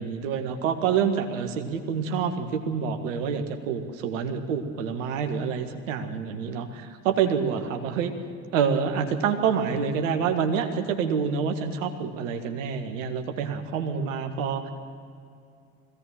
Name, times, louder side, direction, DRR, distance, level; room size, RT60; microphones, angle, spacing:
voice 1, 0.0-8.1 8.5-14.7, right 6 dB, 75° right, 6 dB, 1.8 m, -27 dB
21.0 x 16.5 x 7.6 m, 2.4 s
figure-of-eight pair, 55°, 39 cm